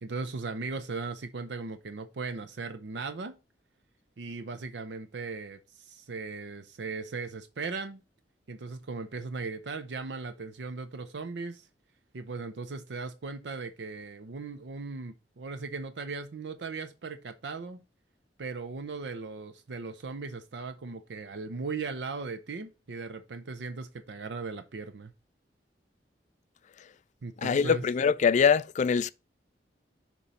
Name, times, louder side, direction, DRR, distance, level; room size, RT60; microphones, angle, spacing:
voice 1, 0.0-3.4 4.2-8.0 8.5-11.7 12.1-17.8 18.4-25.1 27.2-27.8, right 4 dB, 80° right, 0.6 m, -38 dB
voice 2, 27.4-29.1, left 6 dB, 45° left, 0.3 m, -23 dB
7.0 x 3.0 x 5.3 m
head